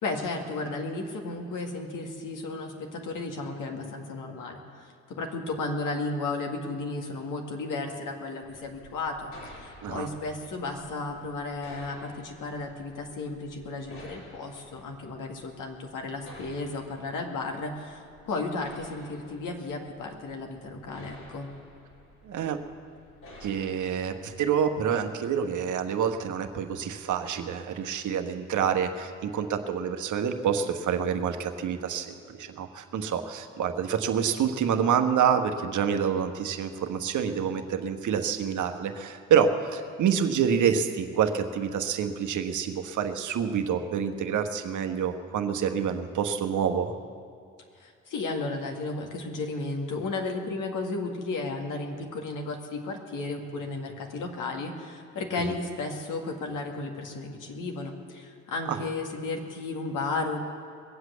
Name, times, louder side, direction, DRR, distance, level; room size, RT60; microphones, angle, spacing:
voice 1, 0.0-21.5 47.8-60.4, left 3 dB, 55° left, 2 dB, 2.1 m, -34 dB
sound 1, 8.4-24.6, left 1 dB, 75° left, 5.3 m, -52 dB
voice 2, 22.2-22.6 23.4-46.9 58.7-58.8, right 7 dB, 55° right, 6 dB, 1.3 m, -27 dB
21.0 x 8.0 x 8.2 m, 2.3 s
hypercardioid pair, 50°, 37 cm